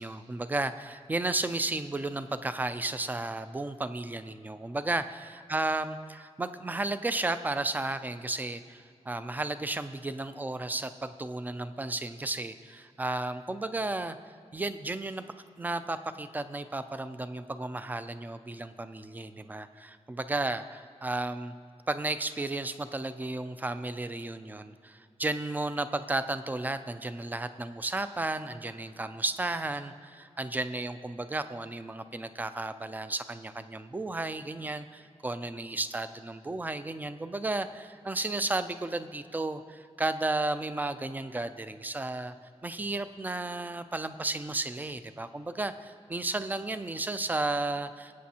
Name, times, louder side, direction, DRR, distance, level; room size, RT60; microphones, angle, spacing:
voice 1, 0.0-14.2 14.5-15.2 15.6-21.5 21.9-42.3 42.6-48.2, right 2 dB, 15° right, 11 dB, 0.3 m, -33 dB
20.5 x 8.5 x 2.8 m, 2.2 s
wide cardioid pair, 170°, 12 cm